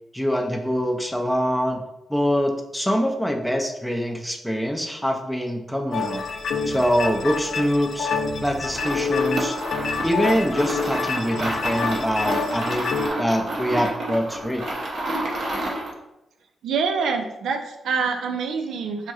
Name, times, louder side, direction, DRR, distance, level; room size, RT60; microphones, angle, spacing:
voice 1, 0.1-1.8 2.1-6.2 6.7-8.1 8.4-9.5 10.0-12.9 13.2-14.6, equal, ahead, 2 dB, 0.5 m, -24 dB
sound 1, 5.9-13.1, left 4 dB, 70° left, 0.4 m, -27 dB
sound 2, 8.6-16.0, right 1 dB, 65° right, 0.8 m, -29 dB
voice 2, 16.6-19.1, right 5 dB, 80° right, 5 dB, 0.3 m, -26 dB
4.2 x 2.6 x 2.4 m, 0.91 s
cardioid pair, 75°, 0 cm